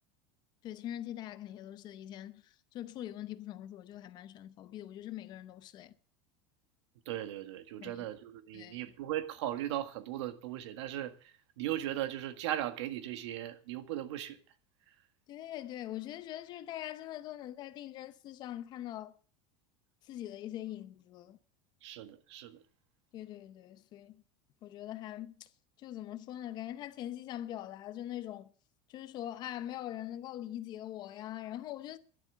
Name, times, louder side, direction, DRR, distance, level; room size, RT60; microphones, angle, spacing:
voice 1, 0.6-2.4 2.7-5.9 7.8-8.1 8.5-8.8 15.3-19.1 20.1-21.4 23.1-24.2 24.6-25.5 25.8-28.5 28.9-32.0, left 12 dB, 30° left, 0.7 m, -42 dB
voice 2, 7.1-11.1 11.6-14.4 21.8-22.6, right 13 dB, 90° right, 1.7 m, -37 dB
11.5 x 11.0 x 6.9 m
supercardioid pair, 175°, 14 cm